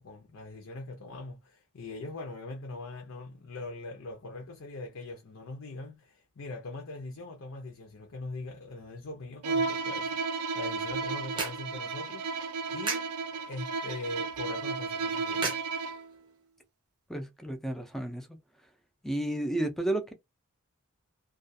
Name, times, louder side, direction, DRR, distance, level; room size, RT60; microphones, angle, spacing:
voice 1, 0.0-10.2 10.5-13.1 13.5-15.6, left 2 dB, 60° left, 0.6 m, -41 dB
Bowed string instrument, 9.4-16.1, right 4 dB, 85° right, 0.4 m, -33 dB
sound 1, 10.5-16.4, right 3 dB, 20° right, 0.8 m, -41 dB
voice 2, 17.1-18.3 19.0-20.1, right 1 dB, ahead, 0.4 m, -32 dB
2.3 x 2.3 x 2.6 m
head